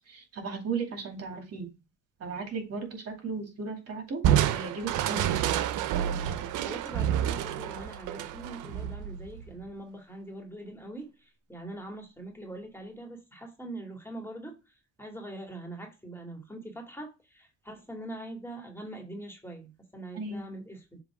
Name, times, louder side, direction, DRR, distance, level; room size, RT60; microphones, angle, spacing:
voice 1, 0.0-1.7 2.2-4.2 4.5-5.4 20.1-20.4, right 4 dB, 55° right, 2 dB, 2.3 m, -36 dB
Crushing, 4.2-9.6, right 10 dB, 85° right, 0.6 m, -28 dB
voice 2, 6.6-21.0, right 1 dB, 10° left, 1 dB, 2.1 m, -43 dB
7.1 x 3.0 x 4.7 m, 0.28 s
cardioid pair, 90°, 30 cm